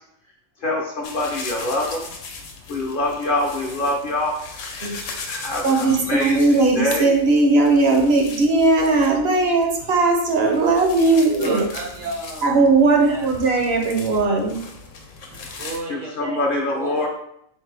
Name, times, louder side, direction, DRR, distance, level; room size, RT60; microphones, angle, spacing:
voice 1, 0.6-2.1 2.7-4.3 5.3-7.1 15.9-17.1, left 2 dB, 55° left, -1 dB, 0.7 m, -24 dB
sound 1, 1.0-15.8, left 4 dB, 80° left, 1.1 m, -38 dB
voice 2, 5.3-11.7 12.4-14.6, right 3 dB, 60° right, 2 dB, 0.8 m, -18 dB
voice 3, 10.9-12.6 13.0-13.3 15.3-16.4 16.7-17.1, right 2 dB, 75° right, 1 dB, 1.2 m, -34 dB
4.2 x 3.3 x 3.2 m, 0.73 s
omnidirectional pair, 1.3 m